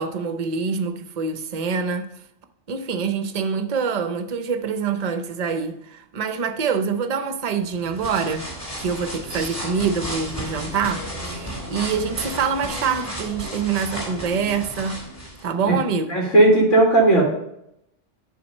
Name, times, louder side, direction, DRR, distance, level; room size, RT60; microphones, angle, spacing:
voice 1, 0.0-2.1 2.7-8.5 8.8-15.1 15.4-16.2, right 5 dB, 40° right, 0.6 m, -25 dB
sound 1, 7.7-15.4, equal, 20° left, 3.2 m, -33 dB
voice 2, 16.1-17.2, right 2 dB, 85° left, 2.5 m, -15 dB
10.5 x 3.8 x 5.3 m
omnidirectional pair, 1.2 m